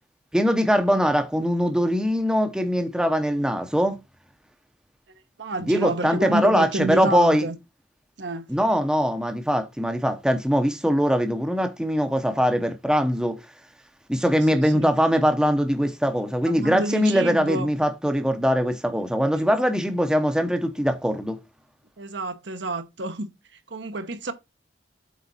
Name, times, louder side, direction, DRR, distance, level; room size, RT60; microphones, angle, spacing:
voice 1, 0.3-4.0 5.6-7.5 8.5-13.4 14.1-21.4, equal, 5° right, 0.7 m, -22 dB
voice 2, 5.4-7.6 8.2-8.5 14.3-14.9 16.4-17.7 22.0-24.3, right 2 dB, 70° right, 1.0 m, -29 dB
8.2 x 3.9 x 4.1 m
head